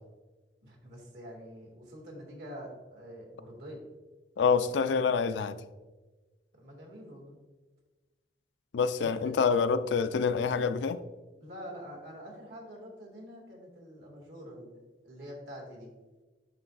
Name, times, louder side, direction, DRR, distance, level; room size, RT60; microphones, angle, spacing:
voice 1, 0.6-3.8 6.5-7.4 9.0-9.3 11.4-15.9, equal, 75° right, 1.8 m, -46 dB
voice 2, 4.4-5.6 8.7-11.0, left 5 dB, 90° left, 0.4 m, -27 dB
10.5 x 3.9 x 2.5 m
head